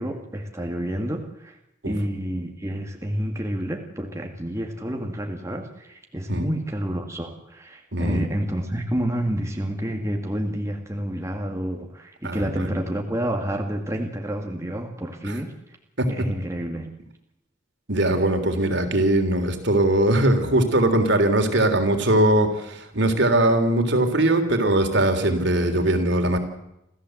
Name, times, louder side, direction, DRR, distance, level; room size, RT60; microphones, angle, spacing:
voice 1, 0.0-1.6 1.9-15.5 16.1-16.9, equal, 15° right, 2 dB, 2.0 m, -29 dB
voice 2, 7.9-8.3 12.2-12.8 15.2-15.4 16.0-16.3 17.9-26.4, right 1 dB, 60° right, 6 dB, 3.4 m, -21 dB
26.5 x 15.0 x 7.9 m, 0.87 s
head